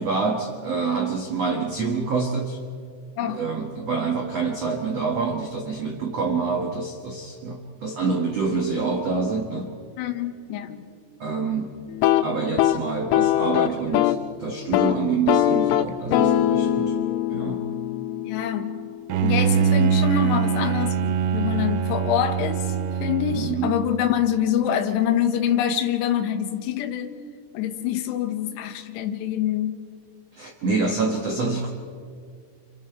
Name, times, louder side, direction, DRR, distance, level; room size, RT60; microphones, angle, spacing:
voice 1, 0.0-2.6 3.3-9.7 11.2-11.8 12.2-16.9 17.3-17.7 23.3-23.7 30.3-31.7, right 4 dB, 70° right, 2 dB, 1.5 m, -26 dB
voice 2, 10.0-10.8 16.2-16.4 18.2-18.7 19.2-22.7 23.0-27.1 27.5-29.8, left 9 dB, 70° left, 5 dB, 3.1 m, -25 dB
sound 1, 11.9-14.3 14.6-15.0 15.3-19.1, left 12 dB, 90° left, 3.3 m, -22 dB
Bowed string instrument, 19.1-24.0, right 7 dB, 85° right, 3.4 m, -23 dB
30.0 x 27.5 x 4.6 m, 2.1 s
omnidirectional pair, 5.5 m